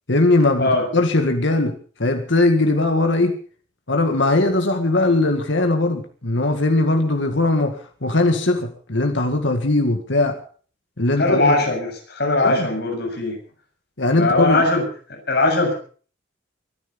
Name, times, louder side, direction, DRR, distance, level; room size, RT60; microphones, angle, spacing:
voice 1, 0.1-3.4 3.9-7.8 8.0-10.4 11.0-11.6 12.4-12.7 14.0-14.6, left 2 dB, 75° left, 5 dB, 2.0 m, -19 dB
voice 2, 11.2-13.4 14.1-15.7, left 2 dB, 60° left, 2 dB, 7.1 m, -20 dB
23.0 x 11.0 x 5.3 m, 0.43 s
head